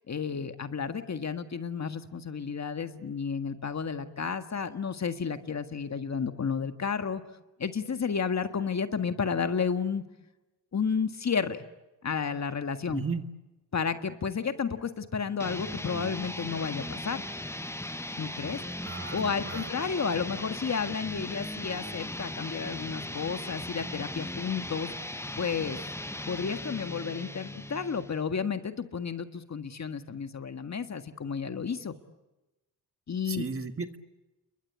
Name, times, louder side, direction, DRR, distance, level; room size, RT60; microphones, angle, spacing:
voice 1, 0.1-7.2 7.6-10.0 10.7-11.6 12.0-13.0 13.7-17.2 18.2-18.6 19.1-24.9 25.4-25.9 26.3-31.9 33.1-33.5, left 6 dB, 40° left, 8 dB, 1.7 m, -32 dB
voice 2, 12.9-13.2 18.8-19.7 33.3-33.9, right 4 dB, 30° right, 8 dB, 1.8 m, -35 dB
sound 1, 15.4-28.2, left 1 dB, 5° left, 0.9 m, -38 dB
29.5 x 23.0 x 8.6 m, 1.0 s
cardioid pair, 95°, 41 cm